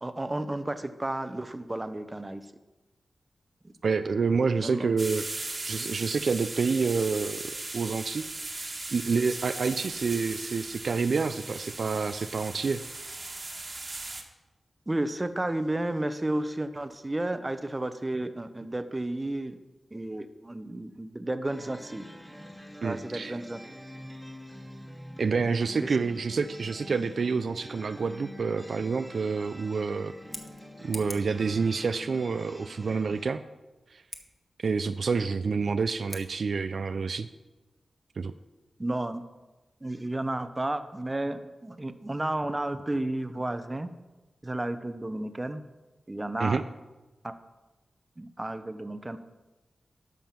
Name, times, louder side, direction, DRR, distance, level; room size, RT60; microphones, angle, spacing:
voice 1, 0.0-2.5 3.6-3.7 4.5-4.9 14.9-19.6 19.9-22.1 22.8-23.6 25.7-26.0 38.8-39.2 39.8-43.9 44.4-45.6 46.1-46.6 47.2-47.3 48.2-49.2, right 1 dB, 25° right, 10 dB, 0.8 m, -32 dB
voice 2, 3.8-8.2 8.5-12.8 22.8-23.4 25.2-30.1 30.8-33.4 33.9-34.0 34.6-37.3 38.2-38.3 46.4-46.6, right 5 dB, 70° right, 10 dB, 0.4 m, -28 dB
sound 1, 5.0-14.2, right 2 dB, 45° right, 1.6 m, -38 dB
sound 2, 21.4-33.3, equal, 10° right, 1.7 m, -46 dB
Scissors, 30.1-31.4 34.0-34.2 36.0-36.3, equal, 10° left, 1.4 m, -43 dB
12.5 x 5.4 x 5.9 m, 1.1 s
cardioid pair, 50°, 0 cm